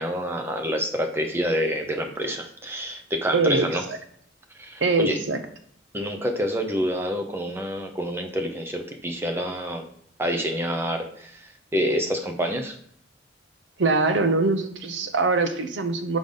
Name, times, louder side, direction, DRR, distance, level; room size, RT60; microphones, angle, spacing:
voice 1, 0.0-3.8 4.6-5.2 5.9-9.9 10.2-12.8, equal, 15° right, 4 dB, 0.7 m, -27 dB
voice 2, 3.3-4.0 4.8-5.4 13.8-16.2, right 3 dB, 75° right, 8 dB, 0.7 m, -23 dB
5.1 x 3.9 x 5.3 m, 0.65 s
head